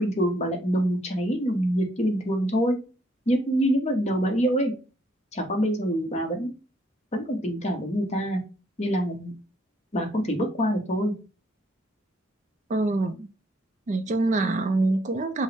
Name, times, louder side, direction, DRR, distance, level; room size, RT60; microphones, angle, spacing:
voice 1, 0.0-2.8 3.3-4.7 5.3-6.5 7.1-8.4 8.8-9.3 9.9-11.1, equal, 35° left, 0.9 m, -25 dB
voice 2, 12.7-13.3 13.9-15.4, right 2 dB, 40° right, 0.4 m, -25 dB
5.2 x 2.0 x 3.3 m
head